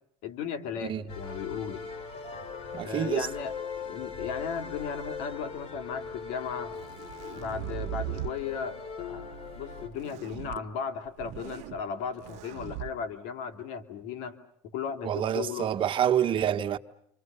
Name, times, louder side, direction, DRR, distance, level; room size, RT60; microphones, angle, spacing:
voice 1, 0.2-1.8 2.8-3.5 3.8-6.8 7.4-14.4 14.6-15.7, left 7 dB, 80° left, 2.8 m, -36 dB
sound 1, 1.1-9.9, left 5 dB, 55° left, 5.0 m, -40 dB
voice 2, 2.7-3.3 15.0-16.8, right 10 dB, 45° right, 1.3 m, -27 dB
sound 2, 4.8-5.6 6.5-8.4 9.9-10.6 11.1-11.8 12.2-12.9, right 17 dB, 75° right, 1.0 m, -39 dB
29.5 x 26.5 x 6.9 m
supercardioid pair, 110°, 12 cm